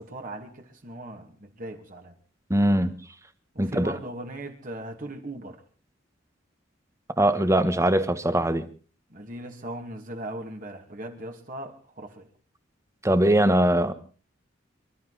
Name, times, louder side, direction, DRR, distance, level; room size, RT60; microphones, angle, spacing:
voice 1, 0.0-2.2 3.5-5.6 9.1-12.3, right 1 dB, 45° right, 3 dB, 2.5 m, -38 dB
voice 2, 2.5-2.9 3.6-3.9 7.2-8.6 13.0-13.9, right 1 dB, 15° right, 11 dB, 1.3 m, -21 dB
26.5 x 12.5 x 4.2 m, 0.40 s
head